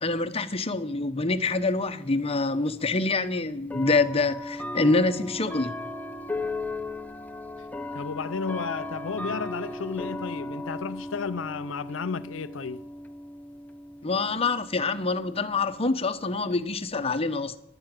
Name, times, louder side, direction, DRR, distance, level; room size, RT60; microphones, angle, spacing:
voice 1, 0.0-5.7 14.0-17.6, left 3 dB, 30° left, 1.0 m, -26 dB
sound 1, 1.5-1.6 2.7-2.8 3.7-16.9, left 2 dB, 10° left, 0.7 m, -37 dB
voice 2, 7.9-12.8, left 5 dB, 85° left, 0.6 m, -33 dB
12.0 x 11.0 x 9.1 m
head